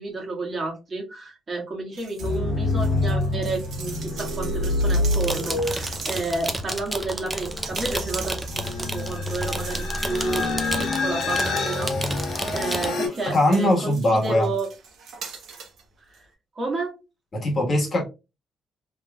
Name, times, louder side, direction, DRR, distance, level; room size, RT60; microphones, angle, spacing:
voice 1, 0.0-14.7 16.1-16.2 16.6-17.0, right 3 dB, 40° right, -1 dB, 1.7 m, -31 dB
sound 1, 1.9-2.4 2.7-12.4 12.9-15.8 16.1-16.2, right 5 dB, 65° right, 1.1 m, -42 dB
sound 2, 2.2-13.1, left 2 dB, 65° left, 1.8 m, -27 dB
sound 3, 5.0-12.9, right 1 dB, 15° right, 0.6 m, -31 dB
voice 2, 12.4-14.5 17.3-18.0, left 1 dB, 40° left, 0 dB, 1.6 m, -22 dB
3.5 x 3.2 x 2.3 m, 0.26 s
cardioid pair, 90°, 0 cm